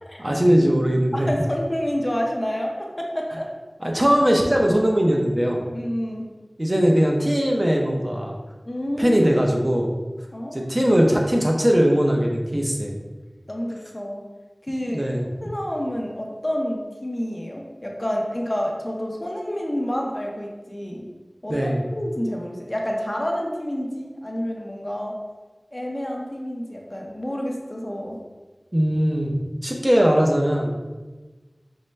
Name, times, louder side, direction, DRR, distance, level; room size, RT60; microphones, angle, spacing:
voice 1, 0.2-1.3 3.8-5.6 6.6-8.4 9.0-9.9 10.5-13.0 14.9-15.3 21.5-21.8 28.7-29.3 29.6-30.7, equal, 30° right, -1 dB, 0.6 m, -20 dB
voice 2, 1.1-3.5 5.7-6.3 8.7-9.2 10.3-10.7 13.5-14.2 14.6-15.1 15.4-21.1 21.4-21.6 21.9-25.2 25.7-28.2, equal, 35° left, -1 dB, 0.6 m, -29 dB
5.3 x 2.1 x 3.2 m, 1.2 s
wide cardioid pair, 45°, 0 cm